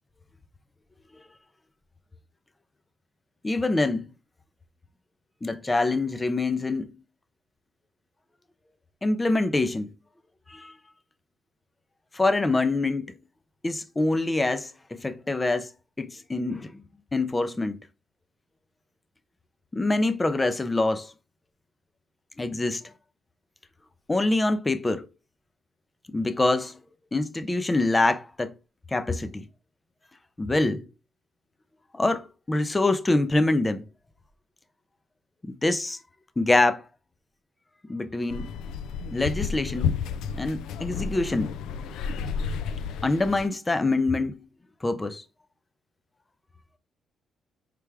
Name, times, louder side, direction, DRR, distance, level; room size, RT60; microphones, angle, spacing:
voice 1, 3.4-4.1 5.4-6.9 9.0-9.9 10.5-10.7 12.1-13.1 13.6-15.7 16.0-16.8 17.1-17.8 19.7-21.1 22.4-22.8 24.1-25.1 26.1-26.7 27.1-28.5 28.9-29.5 30.4-30.9 31.9-33.8 35.5-36.0 36.4-36.8 37.9-38.5 39.1-39.9 40.3-41.5 43.0-44.4 44.8-45.2, left 2 dB, 20° left, 0.5 m, -25 dB
sound 1, 38.3-43.5, left 6 dB, 85° left, 0.3 m, -31 dB
4.6 x 3.3 x 3.4 m
cardioid pair, 90°, 0 cm